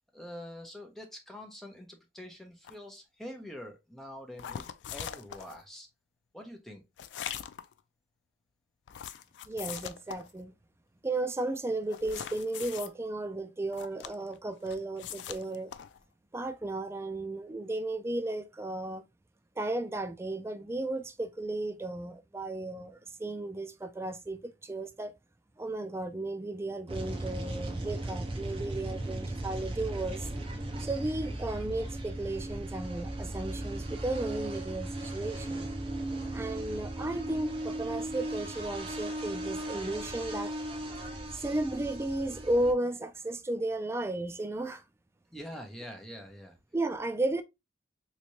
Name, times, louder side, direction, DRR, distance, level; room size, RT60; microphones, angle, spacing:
voice 1, 0.1-4.6 4.9-5.9 6.3-6.8 45.3-46.6, equal, ahead, 0.8 m, -45 dB
sound 1, 2.6-2.8 4.4-5.6 7.0-7.8 8.9-10.4 11.9-12.9 13.7-14.4 14.7-16.0, left 9 dB, 75° left, 0.3 m, -41 dB
voice 2, 9.5-10.5 11.0-15.7 16.3-19.0 19.6-25.1 25.6-30.3 30.8-35.7 36.3-40.5 41.3-44.8 46.7-47.4, right 2 dB, 15° right, 0.3 m, -34 dB
sound 2, 26.9-42.7, right 1 dB, 30° right, 0.7 m, -37 dB
3.3 x 3.1 x 2.8 m
head